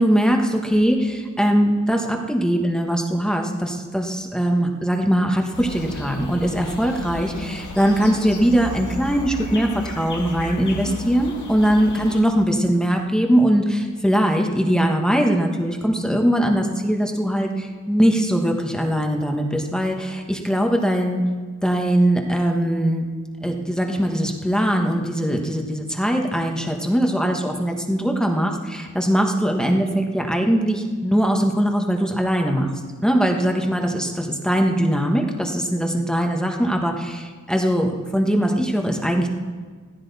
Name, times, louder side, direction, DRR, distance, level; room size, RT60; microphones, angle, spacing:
voice 1, 0.0-21.2 21.6-23.1 23.4-32.7 33.0-39.3, equal, ahead, 2 dB, 1.2 m, -21 dB
sound 1, 5.5-12.2, left 2 dB, 70° left, 1.9 m, -34 dB
16.0 x 14.5 x 4.1 m, 1.5 s
wide cardioid pair, 145°, 31 cm